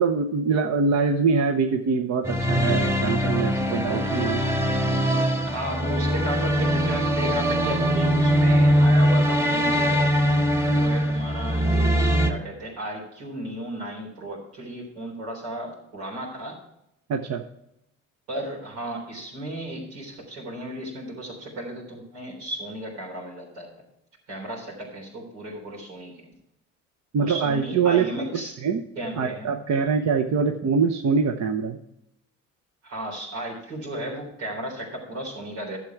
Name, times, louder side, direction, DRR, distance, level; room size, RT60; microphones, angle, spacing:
voice 1, 0.0-4.4 17.1-17.4 27.1-28.1 28.3-28.8 29.2-31.8, right 5 dB, 45° right, 5 dB, 0.9 m, -24 dB
sound 1, 2.3-12.3, equal, 5° right, 1.4 m, -22 dB
voice 2, 5.5-10.1 10.7-16.6 18.3-23.7 24.3-26.3 27.2-28.5 29.0-29.5 32.8-35.8, right 1 dB, 75° right, -1 dB, 3.7 m, -34 dB
11.5 x 7.2 x 4.6 m, 0.81 s
hypercardioid pair, 55°, 38 cm